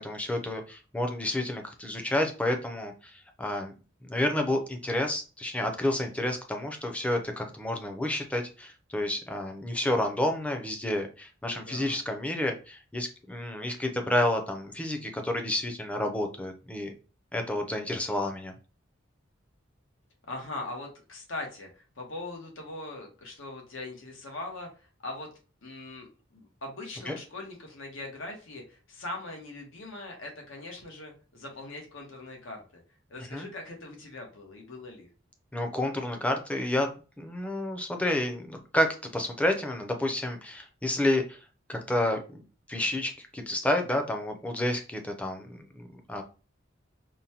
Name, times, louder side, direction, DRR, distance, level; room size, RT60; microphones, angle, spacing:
voice 1, 0.0-3.7 4.0-16.9 17.3-18.5 27.1-27.2 33.3-33.5 35.5-36.9 37.2-41.4 41.7-42.4 42.7-46.2, left 1 dB, 5° left, 4 dB, 0.5 m, -30 dB
voice 2, 11.4-12.0 20.3-24.7 25.0-25.3 25.6-32.8 33.1-35.1, left 2 dB, 85° left, 2 dB, 1.1 m, -41 dB
5.2 x 2.1 x 2.8 m, 0.35 s
head